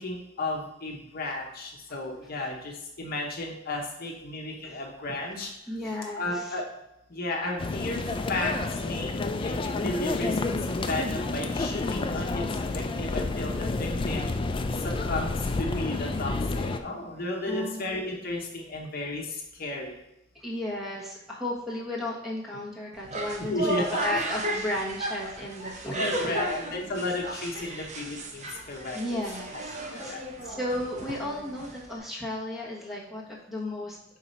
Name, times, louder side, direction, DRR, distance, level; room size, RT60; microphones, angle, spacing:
voice 1, 0.0-5.5 6.2-6.6 7.1-9.1 9.4-10.4 10.7-14.3 14.8-15.3 15.6-20.0 23.4-24.0 26.0-29.2 29.9-30.2, left 2 dB, 50° left, 0 dB, 0.9 m, -33 dB
voice 2, 5.7-6.6 17.5-17.9 20.3-26.9 27.3-27.4 28.9-30.1 30.4-34.0, left 1 dB, ahead, -4 dB, 1.3 m, -34 dB
sound 1, 7.6-16.8, left 3 dB, 25° left, 0.4 m, -30 dB
sound 2, 22.9-32.0, right 1 dB, 35° right, 0.7 m, -35 dB
4.7 x 4.0 x 5.4 m, 0.84 s
head